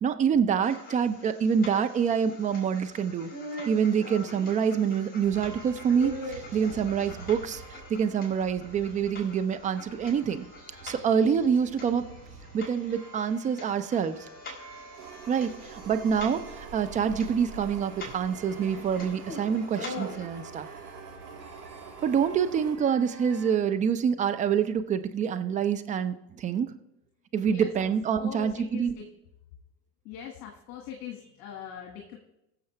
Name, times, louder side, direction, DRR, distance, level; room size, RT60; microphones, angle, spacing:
voice 1, 0.0-3.3 3.7-10.5 10.8-12.0 12.5-14.2 15.3-20.7 22.0-26.7 27.3-28.9, right 7 dB, 15° right, 9 dB, 0.4 m, -26 dB
sound 1, 0.6-20.2, left 1 dB, 20° left, 4.2 m, -44 dB
sound 2, 5.2-23.5, right 3 dB, 90° right, 4.5 m, -50 dB
sound 3, 14.9-22.8, right 6 dB, 50° right, 2.4 m, -45 dB
voice 2, 28.2-29.0 30.1-32.2, left 8 dB, 45° left, 1 dB, 1.9 m, -41 dB
21.0 x 7.0 x 3.3 m, 0.88 s
figure-of-eight pair, 85°, 50 cm